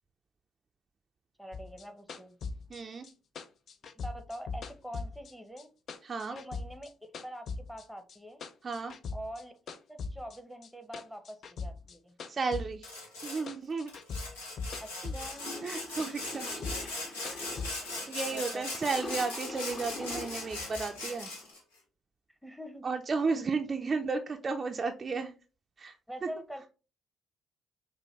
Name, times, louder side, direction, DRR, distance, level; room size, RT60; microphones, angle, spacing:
voice 1, 1.4-2.4 3.8-5.7 6.3-6.9 7.2-8.5 9.1-12.1 14.8-15.5 18.3-18.7 22.4-22.9 26.1-26.7, equal, ahead, 8 dB, 0.9 m, -44 dB
sound 1, 1.5-5.6 5.9-7.8 8.1-9.4 9.7-13.2 13.5-15.4 15.7-17.7, left 4 dB, 55° left, 0.4 m, -40 dB
voice 2, 2.7-3.1 6.0-6.4 8.6-9.0 12.3-12.9 13.2-13.9 15.6-16.5 18.1-21.3 22.8-25.3 25.8-26.0 26.2-26.3, right 4 dB, 40° right, 4 dB, 0.4 m, -33 dB
Sawing, 12.8-13.4 13.9-21.6, left 2 dB, 80° left, 0.9 m, -39 dB
Water / Toilet flush, 15.3-21.5, left 2 dB, 40° left, 1.3 m, -44 dB
4.9 x 2.2 x 3.1 m, 0.32 s
figure-of-eight pair, 45°, 0 cm